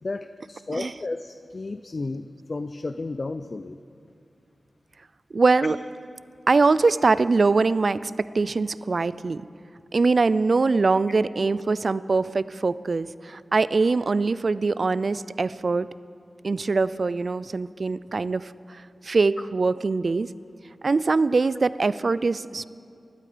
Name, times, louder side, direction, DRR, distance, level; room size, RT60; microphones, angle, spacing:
voice 1, 0.0-3.8 5.6-5.7 11.1-11.2, left 3 dB, 55° left, 11 dB, 0.5 m, -33 dB
voice 2, 5.3-5.8 6.5-9.5 9.9-15.9 16.4-20.3 20.8-22.6, right 3 dB, 60° right, 17 dB, 0.4 m, -23 dB
18.0 x 12.0 x 5.0 m, 2.5 s
cardioid pair, 45°, 0 cm